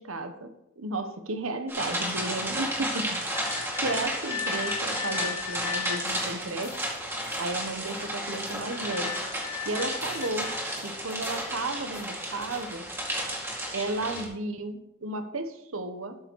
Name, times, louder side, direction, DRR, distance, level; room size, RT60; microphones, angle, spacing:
voice 1, 0.0-3.1 3.8-6.8 7.4-9.1 9.6-10.6 10.8-12.9 13.7-16.2, right 2 dB, 80° right, 8 dB, 1.2 m, -33 dB
sound 1, 1.7-14.3, right 1 dB, 10° right, 2.0 m, -32 dB
sound 2, 3.3-6.1 8.2-10.8, left 9 dB, 70° left, 3.2 m, -37 dB
sound 3, 6.0-12.9, left 3 dB, 30° left, 2.0 m, -50 dB
12.5 x 6.8 x 4.7 m, 0.85 s
head